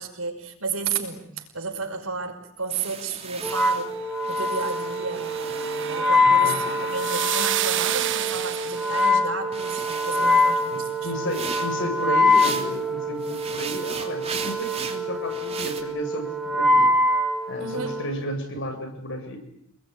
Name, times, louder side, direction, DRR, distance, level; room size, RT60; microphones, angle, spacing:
voice 1, 0.0-3.9 4.3-11.1 17.6-18.0, right 4 dB, 80° right, 5 dB, 5.5 m, -32 dB
sound 1, 2.7-6.3 6.6-9.2 9.5-12.8 13.2-15.8, right 5 dB, 30° right, 3.2 m, -38 dB
Wind instrument woodwind instrument, 3.4-18.1, left 2 dB, ahead, 3.3 m, -24 dB
sound 2, 4.4-9.1, right 11 dB, 60° right, 1.1 m, -30 dB
voice 2, 6.3-6.6 10.1-10.4 10.7-17.0 17.5-19.4, equal, 60° left, 6 dB, 7.3 m, -33 dB
28.5 x 21.0 x 9.7 m, 0.69 s
head